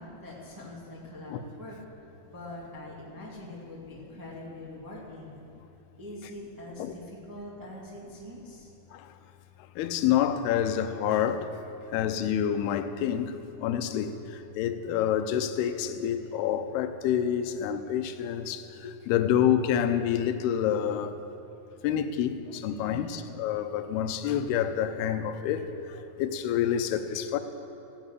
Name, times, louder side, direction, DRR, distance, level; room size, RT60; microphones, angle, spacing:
voice 1, 0.0-1.8 2.2-5.3 6.0-8.7 22.8-23.3, left 1 dB, 10° right, 1.2 m, -43 dB
voice 2, 9.8-11.6 11.9-21.2 21.8-27.4, left 9 dB, 90° left, 2.7 m, -28 dB
15.0 x 10.0 x 8.2 m
omnidirectional pair, 4.4 m